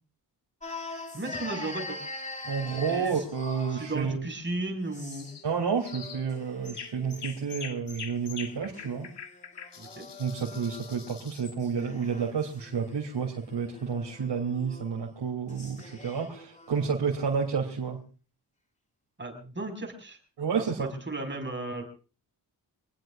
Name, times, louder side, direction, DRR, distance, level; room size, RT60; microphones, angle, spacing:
sound 1, 0.6-4.0 4.8-5.4 5.8-7.4 8.5-11.2 11.6-17.2, left 2 dB, 15° left, 2.5 m, -44 dB
voice 1, 1.1-2.0 2.9-3.2 3.7-5.3 9.8-10.1 19.2-20.2 20.6-21.8, right 2 dB, 25° right, 4 dB, 5.1 m, -35 dB
voice 2, 2.4-4.3 5.4-9.1 10.2-18.0 20.4-20.9, right 6 dB, 75° right, -1 dB, 3.1 m, -30 dB
sound 2, 5.1-5.5 5.8-6.3 6.6-11.6, left 6 dB, 80° left, 2.0 m, -44 dB
26.5 x 19.0 x 2.5 m, 0.36 s
wide cardioid pair, 115°, 41 cm